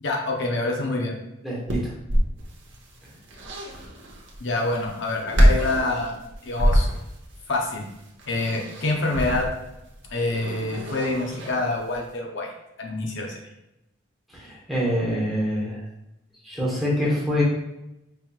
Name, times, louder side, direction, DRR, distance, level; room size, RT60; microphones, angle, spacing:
voice 1, 0.0-1.1 4.4-6.9 7.5-7.8 8.3-9.5 10.1-12.5 12.8-13.4, left 2 dB, 65° left, 0 dB, 0.6 m, -26 dB
voice 2, 1.4-1.8 14.3-15.8 16.4-17.4, equal, ahead, -6 dB, 1.1 m, -25 dB
sound 1, 1.7-12.1, equal, 70° right, 0.8 m, -26 dB
5.4 x 3.0 x 2.3 m, 0.88 s
head